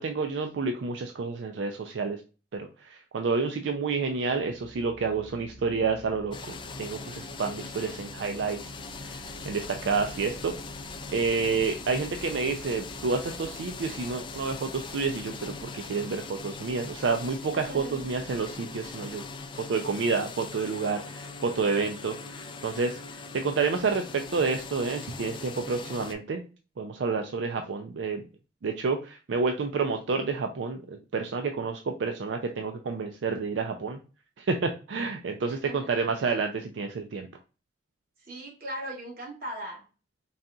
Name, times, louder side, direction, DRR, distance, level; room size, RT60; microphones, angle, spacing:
voice 1, 0.0-2.2 2.5-8.7 9.0-10.5 11.1-19.2 19.7-26.4 26.8-28.2 28.6-34.0 34.4-37.3, right 4 dB, 85° right, 5 dB, 0.4 m, -29 dB
sound 1, 4.3-20.5, right 2 dB, 80° left, 0.8 m, -49 dB
sound 2, 6.3-26.1, left 4 dB, 30° left, 0.4 m, -41 dB
voice 2, 17.5-18.0 35.5-35.9 36.2-36.4 38.2-39.8, right 1 dB, 55° right, -2 dB, 1.6 m, -39 dB
4.0 x 2.3 x 3.7 m, 0.35 s
head